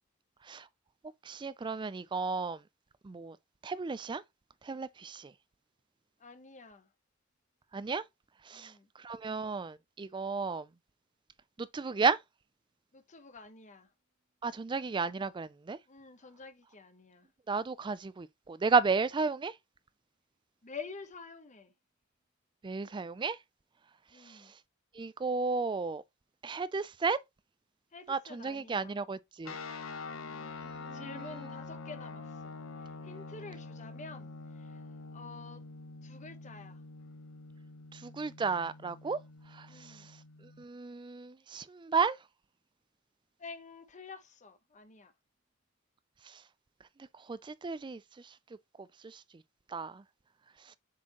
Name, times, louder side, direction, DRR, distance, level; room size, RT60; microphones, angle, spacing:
voice 1, 1.3-2.6 3.0-3.4 3.6-4.2 4.6-5.3 7.7-8.0 8.5-8.7 9.0-10.7 11.6-12.2 14.4-15.8 17.5-19.5 22.6-23.4 24.3-24.4 25.0-26.0 26.4-27.2 28.1-29.6 30.9-31.0 37.9-39.2 39.5-39.9 40.6-42.2 47.3-48.0 49.0-49.2 49.7-50.0, right 4 dB, 20° right, 0.4 m, -33 dB
voice 2, 6.2-6.9 8.5-8.9 12.9-13.9 15.9-17.3 20.6-21.7 24.1-24.5 27.9-29.0 30.9-35.6 36.0-36.8 39.7-40.1 43.4-45.1, left 4 dB, 35° left, 1.0 m, -49 dB
sound 1, 29.4-40.6, left 3 dB, 75° left, 0.8 m, -46 dB
7.4 x 4.3 x 3.0 m
head